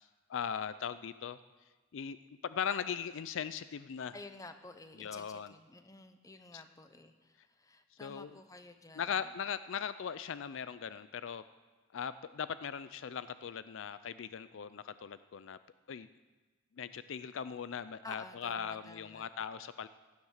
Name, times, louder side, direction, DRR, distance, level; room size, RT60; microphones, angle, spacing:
voice 1, 0.0-1.4 1.9-2.2 2.4-4.2 5.0-5.5 6.5-6.6 8.0-8.3 9.0-11.4 11.9-15.6 15.9-16.1 16.8-19.9, left 7 dB, 65° left, 14 dB, 0.4 m, -39 dB
voice 2, 4.1-9.3 18.0-19.3, left 2 dB, 15° left, 8 dB, 0.8 m, -52 dB
16.0 x 10.5 x 6.5 m, 1.3 s
head